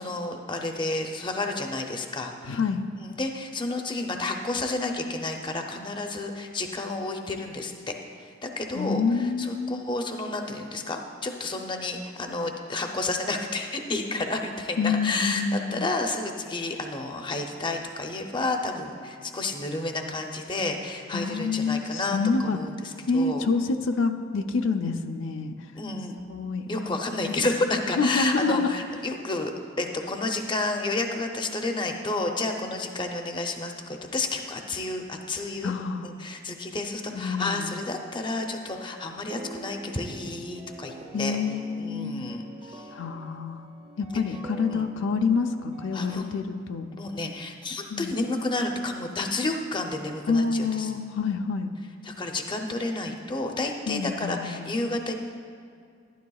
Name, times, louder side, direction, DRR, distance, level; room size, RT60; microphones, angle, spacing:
voice 1, 0.0-2.6 3.0-7.9 8.4-15.4 15.7-22.2 22.5-23.4 25.7-26.2 26.7-29.5 29.8-35.7 36.0-41.4 41.8-42.8 44.7-44.9 45.9-46.3 47.0-50.9 52.1-55.1, left 2 dB, 25° left, 3 dB, 0.6 m, -31 dB
voice 2, 2.4-2.8 8.8-9.8 14.8-15.9 21.1-22.6 23.1-25.7 26.3-27.0 27.3-27.4 28.0-28.7 35.6-36.1 37.1-37.8 41.1-42.1 42.9-43.7 44.0-46.9 47.9-48.1 50.3-51.7 53.9-54.8, left 4 dB, 75° left, 5 dB, 0.5 m, -27 dB
sound 1, 39.3-46.1, right 2 dB, 30° right, 0.8 m, -45 dB
12.5 x 11.5 x 2.3 m, 2.3 s
head